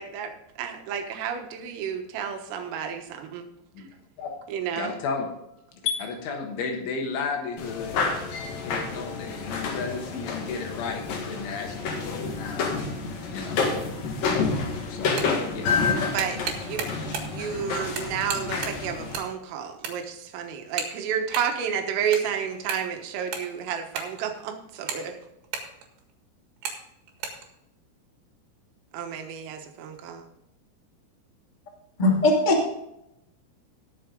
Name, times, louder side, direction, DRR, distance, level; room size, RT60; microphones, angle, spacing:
voice 1, 0.0-3.5 4.5-4.9 15.8-16.4 16.6-16.9 17.2-25.2 28.9-30.3, right 8 dB, 80° right, 4 dB, 4.0 m, -31 dB
voice 2, 4.8-5.3 5.7-8.0 8.6-12.7 13.3-13.6 14.9-15.2 15.5-15.7, left 5 dB, 75° left, 2 dB, 3.6 m, -33 dB
sound 1, 7.6-19.2, left 4 dB, 55° left, 2.8 m, -29 dB
sound 2, 15.0-15.4 15.9-17.4 17.7-19.3 19.6-20.2 20.7-21.6 21.9-24.4 24.7-26.1 26.6-26.8 27.1-27.5, right 6 dB, 60° right, 3.4 m, -34 dB
voice 3, 32.0-32.7, left 2 dB, 90° left, -2 dB, 0.4 m, -20 dB
18.0 x 6.8 x 3.8 m, 0.83 s
omnidirectional pair, 5.9 m